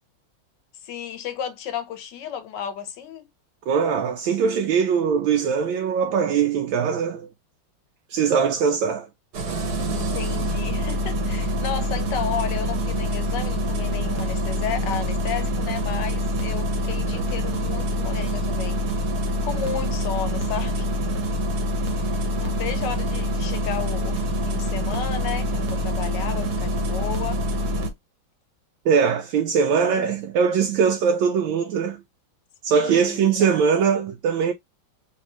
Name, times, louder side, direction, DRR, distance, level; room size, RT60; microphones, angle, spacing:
voice 1, 0.8-3.3 9.9-18.8 19.4-20.9 21.9-27.4 29.8-30.1 32.7-33.6, left 8 dB, 65° left, 1.3 m, -33 dB
voice 2, 3.7-7.3 8.1-9.1 28.8-32.0 32.6-34.5, right 6 dB, 75° right, 1.3 m, -21 dB
Engine starting, 9.3-27.9, left 1 dB, 55° right, 1.4 m, -25 dB
3.5 x 3.3 x 3.0 m
omnidirectional pair, 2.3 m